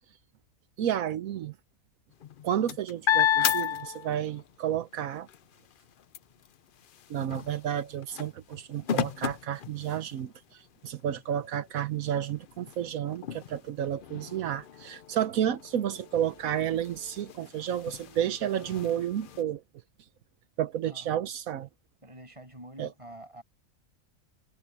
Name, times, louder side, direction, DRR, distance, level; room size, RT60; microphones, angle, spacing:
voice 1, 0.8-1.5 2.4-5.3 7.1-19.6 20.6-21.7 22.8-22.9, right 10 dB, 85° right, 1.2 m, -31 dB
sound 1, 2.1-4.5 4.9-10.4 11.0-11.1 11.4-19.4, left 10 dB, 55° left, 0.6 m, -34 dB
voice 2, 22.0-23.4, right 1 dB, 20° right, 7.8 m, -47 dB
omnidirectional pair, 1.4 m